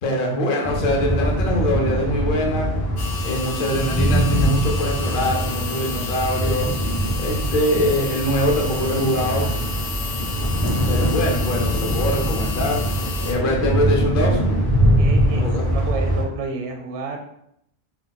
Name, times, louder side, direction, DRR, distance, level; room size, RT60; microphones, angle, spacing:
voice 1, 0.0-2.7 3.2-6.7 7.2-9.4 10.9-12.8 13.2-14.4 15.3-15.7, left 1 dB, 55° left, 0 dB, 0.7 m, -23 dB
sound 1, 0.6-16.2, equal, 25° left, 0.7 m, -22 dB
sound 2, 3.0-13.3, left 5 dB, 90° left, 0.9 m, -32 dB
voice 2, 13.0-13.5 15.0-17.2, right 4 dB, 85° right, 4 dB, 0.9 m, -31 dB
2.3 x 2.2 x 3.9 m, 0.74 s
omnidirectional pair, 1.1 m